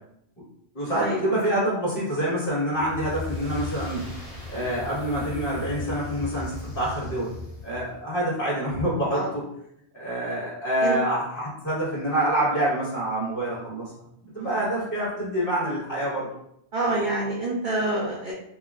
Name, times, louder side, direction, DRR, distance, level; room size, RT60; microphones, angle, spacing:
voice 1, 0.7-4.1 4.5-7.3 7.6-9.4 9.9-13.9 14.2-16.3, right 1 dB, 55° left, -7 dB, 1.8 m, -26 dB
sound 1, 2.7-8.0, left 3 dB, 75° left, 1.8 m, -36 dB
voice 2, 16.7-18.3, right 2 dB, 55° right, -4 dB, 0.7 m, -26 dB
5.7 x 2.1 x 2.4 m, 0.76 s
omnidirectional pair, 1.1 m